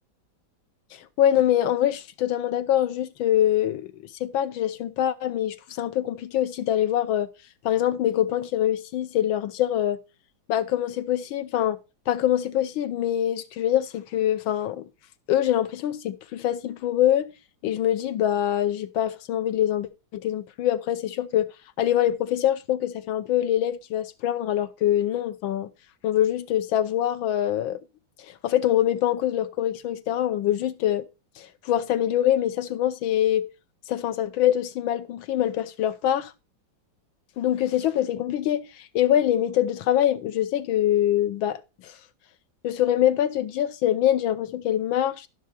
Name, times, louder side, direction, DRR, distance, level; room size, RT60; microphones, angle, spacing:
voice 1, 0.9-3.9 4.2-7.3 7.6-10.0 10.5-11.8 12.1-14.9 15.3-17.3 17.6-21.5 21.8-25.7 26.0-27.8 28.2-31.0 31.4-33.5 33.9-36.3 37.4-41.9 42.6-45.3, left 11 dB, 90° left, 1.6 m, -24 dB
12.5 x 6.2 x 4.2 m
omnidirectional pair, 2.1 m